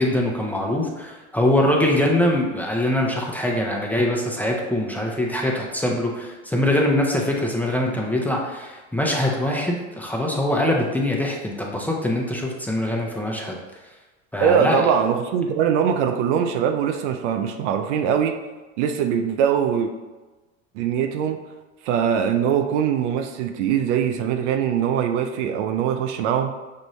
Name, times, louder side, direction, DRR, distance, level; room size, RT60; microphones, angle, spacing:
voice 1, 0.0-13.6 14.3-14.8, left 1 dB, 5° left, -1 dB, 0.9 m, -23 dB
voice 2, 14.4-18.4 18.8-19.9 20.7-21.4 21.8-26.5, right 8 dB, 75° right, 6 dB, 0.6 m, -22 dB
6.4 x 2.6 x 3.1 m, 1.2 s
hypercardioid pair, 80°, 36 cm